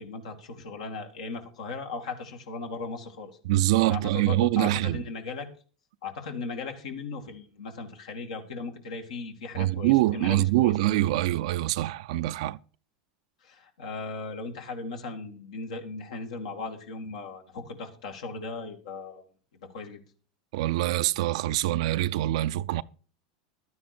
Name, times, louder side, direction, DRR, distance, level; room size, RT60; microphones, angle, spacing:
voice 1, 0.0-3.3 3.8-5.5 6.0-10.7 11.1-11.3 13.4-19.2 19.7-20.0, left 4 dB, 80° left, 2.3 m, -37 dB
voice 2, 3.5-5.0 9.6-12.6 20.5-22.8, right 15 dB, 70° right, 0.5 m, -24 dB
12.0 x 9.5 x 4.4 m
hypercardioid pair, 105°, 4 cm